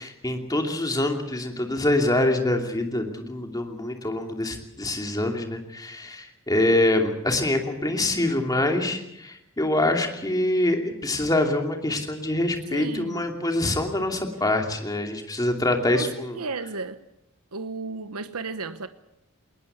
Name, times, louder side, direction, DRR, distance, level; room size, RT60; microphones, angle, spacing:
voice 1, 0.0-16.4, left 1 dB, 15° left, 2.8 m, -25 dB
voice 2, 12.7-13.2 15.9-17.0 17.5-18.9, right 3 dB, 85° right, 1.0 m, -34 dB
20.5 x 20.0 x 8.0 m
head